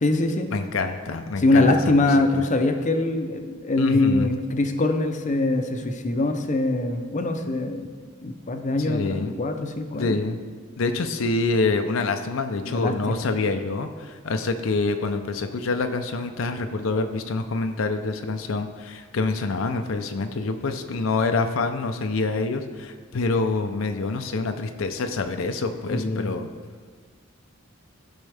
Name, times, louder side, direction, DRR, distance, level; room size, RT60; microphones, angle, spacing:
voice 1, 0.0-0.5 1.4-7.9 8.2-10.2 12.6-13.3 25.9-26.3, left 2 dB, 35° left, 5 dB, 0.6 m, -23 dB
voice 2, 0.5-2.1 3.8-4.3 8.8-9.3 9.9-10.4 10.8-26.5, left 3 dB, 85° left, 7 dB, 0.6 m, -26 dB
14.5 x 5.3 x 3.4 m, 1.6 s
head